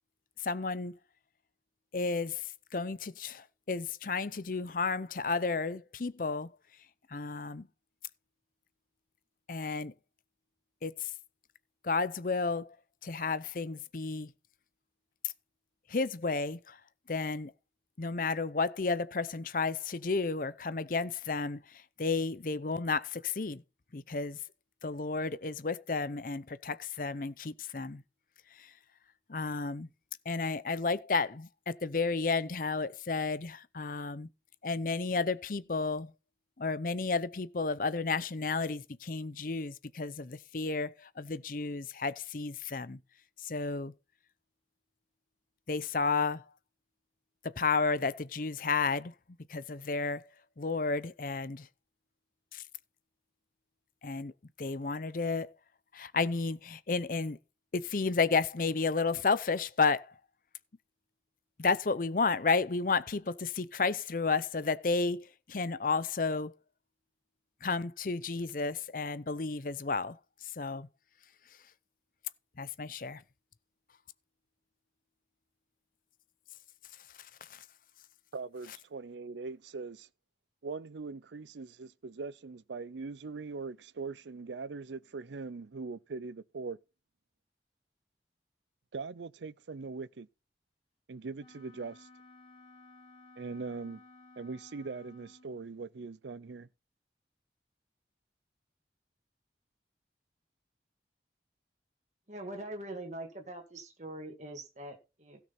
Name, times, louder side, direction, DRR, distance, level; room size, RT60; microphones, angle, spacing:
voice 1, 0.4-0.9 1.9-6.5 7.1-7.7 9.5-9.9 10.8-11.1 11.8-12.8 13.0-14.3 15.2-15.3 15.9-16.8 17.1-17.5 18.0-23.6 23.9-24.4 24.8-28.0 28.5-28.7 29.3-29.9 30.2-34.3 34.6-36.1 36.6-43.0 43.4-43.9 45.7-46.5 47.4-49.1 49.5-50.2 50.6-51.7 52.5-52.6 54.0-54.3 54.6-55.5 55.9-57.4 57.7-60.2 61.6-66.5 67.6-70.9 72.6-73.2 77.2-77.6, left 4 dB, 50° left, 0.6 m, -32 dB
voice 2, 78.3-80.1 80.6-86.8 88.9-90.3 91.1-92.1 93.4-94.0 94.4-96.7, right 4 dB, 85° right, 0.5 m, -41 dB
Wind instrument woodwind instrument, 91.4-95.7, left 2 dB, 30° left, 2.8 m, -57 dB
voice 3, 102.3-105.4, right 1 dB, 40° right, 2.1 m, -43 dB
16.5 x 6.1 x 4.3 m
head